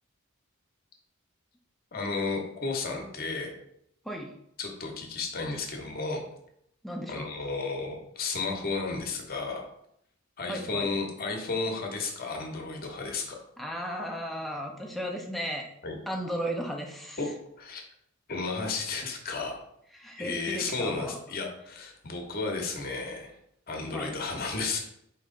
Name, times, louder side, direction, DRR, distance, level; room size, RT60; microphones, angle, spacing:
voice 1, 1.9-3.5 4.6-6.2 7.1-9.6 10.4-13.4 15.8-16.0 17.2-17.3 17.6-17.8 18.3-19.6 20.2-23.3 23.7-24.8, left 3 dB, 45° left, 2 dB, 0.9 m, -33 dB
voice 2, 6.8-7.3 10.5-10.9 13.6-15.7 16.1-17.2 19.9-21.2 23.9-24.1, equal, ahead, 0 dB, 0.6 m, -35 dB
4.4 x 3.0 x 3.7 m, 0.74 s
head